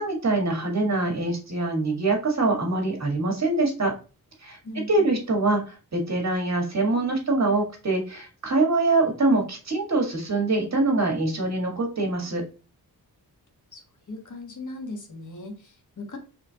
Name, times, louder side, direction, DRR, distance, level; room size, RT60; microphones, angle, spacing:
voice 1, 0.0-3.9 4.4-4.6 4.9-12.4, right 2 dB, 45° right, 1 dB, 1.6 m, -24 dB
voice 2, 4.6-5.2 13.7-13.8 14.1-16.2, left 2 dB, 55° left, 2 dB, 1.2 m, -38 dB
4.3 x 3.4 x 2.7 m, 0.34 s
wide cardioid pair, 125°, 36 cm